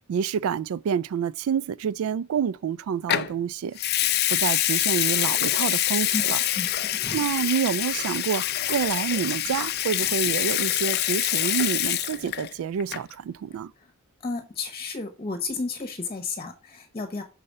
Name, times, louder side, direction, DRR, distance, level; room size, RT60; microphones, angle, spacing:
voice 1, 0.1-3.8 4.3-6.4 7.1-13.7, right 7 dB, 80° right, 0.3 m, -28 dB
Water tap faucet / Sink (filling or washing) / Liquid, 3.1-3.3 3.8-12.5 12.8-13.1, left 13 dB, 50° left, 0.5 m, -25 dB
voice 2, 6.6-7.2 14.2-17.2, left 4 dB, 30° left, 1.0 m, -32 dB
6.6 x 4.2 x 6.5 m
head